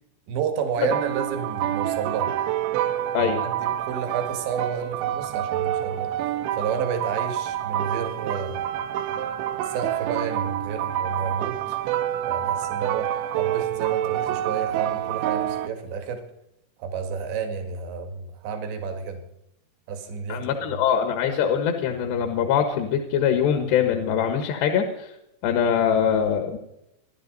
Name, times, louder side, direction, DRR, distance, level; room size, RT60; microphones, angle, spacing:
voice 1, 0.3-2.3 3.2-6.1 6.5-8.6 9.6-11.8 12.3-16.2 16.8-19.2 19.9-20.8, right 6 dB, 75° right, 5 dB, 4.2 m, -31 dB
sound 1, 0.8-15.7, right 12 dB, 90° right, 3.2 m, -27 dB
voice 2, 20.3-25.1 25.4-26.6, left 8 dB, 75° left, 5 dB, 3.4 m, -23 dB
27.5 x 11.5 x 4.0 m, 0.83 s
omnidirectional pair, 5.2 m